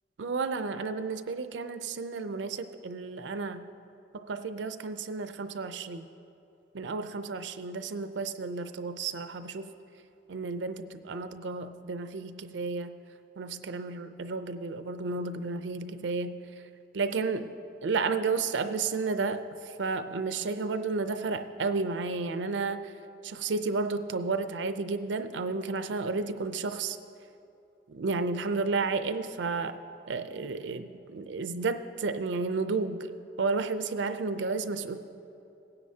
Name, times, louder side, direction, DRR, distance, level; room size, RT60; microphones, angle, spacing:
voice 1, 0.2-3.6 4.1-6.1 6.7-9.7 10.3-12.9 13.4-16.4 16.9-17.5 17.8-22.9 23.2-27.0 27.9-29.8 30.1-33.1 33.4-35.0, right 4 dB, 85° right, 10 dB, 0.5 m, -32 dB
18.0 x 9.7 x 2.8 m, 2.7 s
head